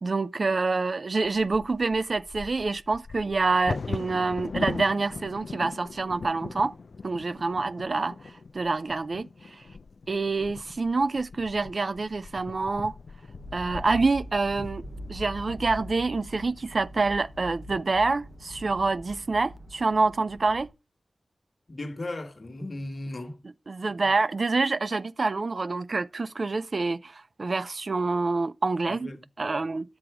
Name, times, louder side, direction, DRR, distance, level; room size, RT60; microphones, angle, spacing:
voice 1, 0.0-6.7 7.0-8.2 8.5-9.6 10.1-12.9 13.5-14.8 15.1-20.7 23.7-29.1 29.4-30.0, right 3 dB, 60° right, 0.4 m, -27 dB
Bird vocalization bird call bird song / Wind / Thunder, 1.2-17.1 17.8-17.9 18.2-18.6 19.1-19.6, left 4 dB, 75° left, 0.4 m, -40 dB
sound 1, 13.4-20.7, equal, 75° right, 3.9 m, -43 dB
voice 2, 21.7-23.4 24.0-24.1 28.9-29.7, left 2 dB, 55° left, 1.4 m, -37 dB
9.4 x 6.0 x 4.8 m
cardioid pair, 55°, 0 cm